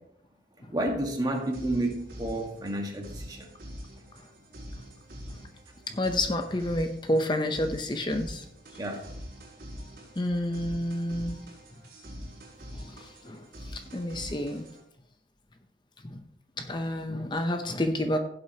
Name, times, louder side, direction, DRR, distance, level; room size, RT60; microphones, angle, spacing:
voice 1, 0.7-3.5 8.8-9.0, right 1 dB, 20° right, 2 dB, 1.6 m, -30 dB
sound 1, 1.3-14.8, equal, 55° right, 4.7 m, -44 dB
voice 2, 5.9-8.4 10.2-11.4 12.8-12.9 13.2-13.4 13.7-14.6 16.1-16.2 16.6-18.2, left 1 dB, 25° left, 6 dB, 0.7 m, -29 dB
16.0 x 7.7 x 2.9 m, 0.73 s
head